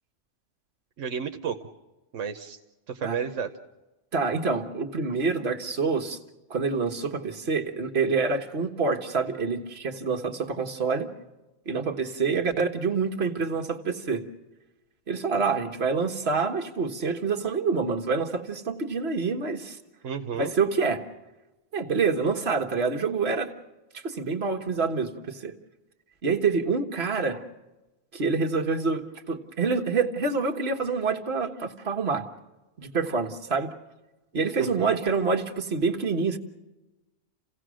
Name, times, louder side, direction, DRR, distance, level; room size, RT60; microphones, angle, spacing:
voice 1, 1.0-1.6 2.1-2.6 2.9-3.5 20.0-20.5 34.6-34.9, right 7 dB, 85° right, 6 dB, 1.3 m, -32 dB
voice 2, 4.1-6.2 6.5-11.1 11.6-14.2 15.1-19.8 20.4-21.0 21.7-23.5 23.9-25.5 26.2-27.4 28.1-32.3 32.8-33.7 34.3-36.4, right 4 dB, 55° right, 2 dB, 1.7 m, -27 dB
29.0 x 16.5 x 6.3 m, 1.1 s
omnidirectional pair, 1.3 m